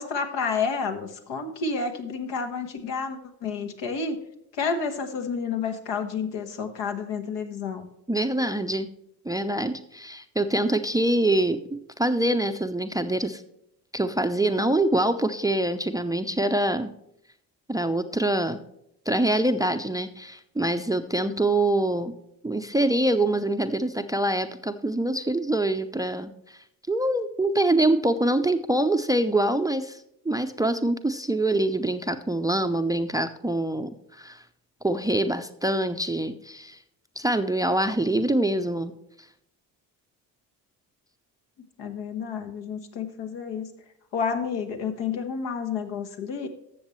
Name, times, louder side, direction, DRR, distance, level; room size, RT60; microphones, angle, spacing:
voice 1, 0.0-4.2 4.6-7.9 41.8-43.7 44.1-46.5, left 5 dB, 65° left, 5 dB, 1.4 m, -30 dB
voice 2, 8.1-8.9 9.2-11.6 12.0-13.4 13.9-16.9 17.7-18.6 19.1-22.1 22.4-26.6 26.9-34.4 34.8-36.8 37.2-38.9, right 1 dB, 10° right, 10 dB, 0.6 m, -25 dB
13.0 x 7.3 x 3.1 m, 0.78 s
hypercardioid pair, 50°, 47 cm